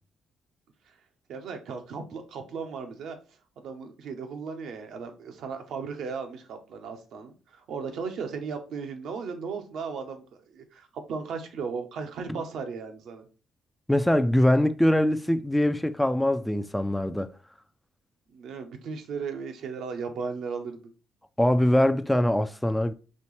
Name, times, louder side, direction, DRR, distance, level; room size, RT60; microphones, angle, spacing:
voice 1, 1.3-3.2 3.6-13.3 18.3-20.9, right 5 dB, 75° right, 0.8 m, -36 dB
voice 2, 13.9-17.3 21.4-22.9, left 1 dB, 5° left, 0.3 m, -23 dB
4.3 x 3.1 x 3.1 m
cardioid pair, 90°, 0 cm